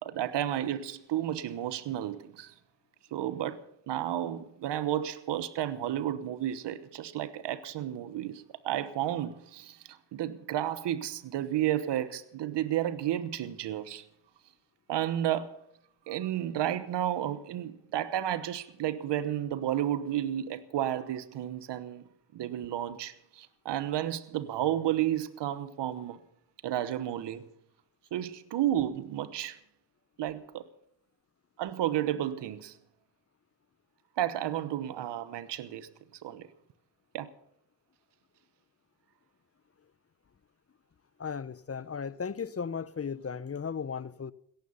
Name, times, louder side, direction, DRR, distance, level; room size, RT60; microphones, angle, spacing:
voice 1, 0.0-2.5 3.1-3.6 3.9-14.0 14.9-15.5 16.1-22.0 22.3-26.2 26.6-27.4 28.1-29.6 30.2-30.7 31.6-32.8 34.2-35.9 36.2-36.5 37.1-37.3, right 12 dB, 80° right, 1.1 m, -32 dB
voice 2, 41.2-44.3, left 6 dB, 35° left, 0.9 m, -36 dB
16.5 x 14.5 x 5.6 m
supercardioid pair, 45°, 41 cm